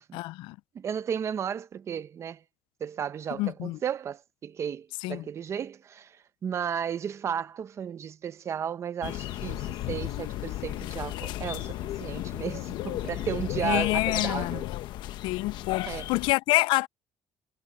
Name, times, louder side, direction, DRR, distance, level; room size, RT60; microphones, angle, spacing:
voice 1, 0.1-0.6 3.4-3.8 5.0-5.2 13.6-14.6 15.2-16.9, left 20 dB, 85° left, 0.4 m, -27 dB
voice 2, 0.7-2.4 2.8-14.7 15.9-16.1, right 8 dB, 35° right, 0.9 m, -34 dB
sound 1, 9.0-16.3, left 14 dB, 70° left, 1.0 m, -34 dB
cardioid pair, 145°, 8 cm